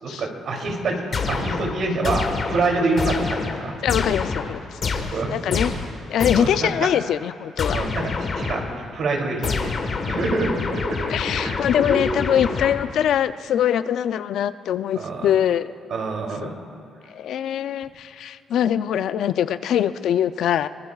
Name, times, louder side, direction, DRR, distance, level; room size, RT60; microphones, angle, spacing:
voice 1, 0.0-3.7 5.1-5.8 6.3-6.9 7.7-8.6 8.9-9.8 10.1-12.0 14.9-15.3 15.9-16.5, right 3 dB, 65° right, 0 dB, 2.9 m, -26 dB
sound 1, 1.1-6.7 7.6-8.9 9.4-13.1, left 4 dB, 50° left, 1.4 m, -28 dB
voice 2, 3.8-4.6 4.9-5.7 6.1-7.8 11.1-15.7 16.4-16.5 17.1-20.7, left 10 dB, 75° left, 13 dB, 0.4 m, -23 dB
23.5 x 20.5 x 2.4 m, 2.3 s
cardioid pair, 90°, 0 cm